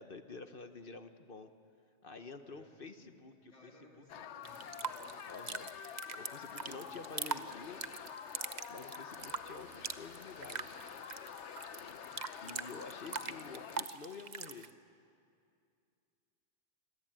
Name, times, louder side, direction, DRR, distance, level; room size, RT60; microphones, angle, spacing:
voice 1, 0.0-1.5 2.0-3.7 5.3-5.7 6.2-7.8 8.7-10.8 11.8-12.0 12.4-14.7, left 4 dB, 50° left, 9 dB, 1.3 m, -49 dB
voice 2, 2.4-3.1 3.4-5.0 6.8-7.1 13.1-13.3, left 1 dB, 30° left, 0 dB, 3.1 m, -62 dB
sound 1, 4.1-13.9, left 8 dB, 75° left, 1.1 m, -48 dB
sound 2, 4.4-14.7, right 5 dB, 40° right, 0.9 m, -44 dB
27.5 x 23.0 x 9.1 m, 2.4 s
omnidirectional pair, 1.2 m